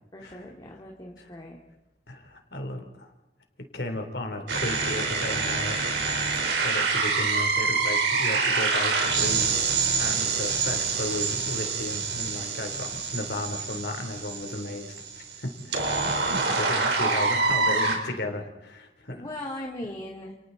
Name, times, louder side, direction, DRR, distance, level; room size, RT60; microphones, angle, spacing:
voice 1, 0.1-1.6 19.1-20.3, left 1 dB, 25° left, -1 dB, 2.6 m, -38 dB
voice 2, 2.1-3.1 3.7-5.9 6.6-15.8 16.0-19.3, left 1 dB, 65° left, 5 dB, 3.6 m, -34 dB
sound 1, 4.5-18.0, right 4 dB, 75° right, 4.3 m, -26 dB
30.0 x 29.5 x 4.1 m, 0.89 s
head